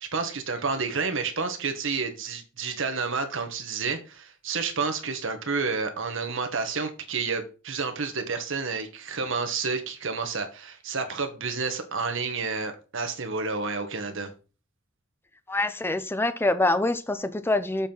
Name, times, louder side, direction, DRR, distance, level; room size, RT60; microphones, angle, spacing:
voice 1, 0.0-14.3, right 4 dB, 65° right, 1.3 m, -30 dB
voice 2, 15.5-17.9, left 2 dB, 10° left, 0.5 m, -25 dB
7.2 x 4.5 x 5.4 m
head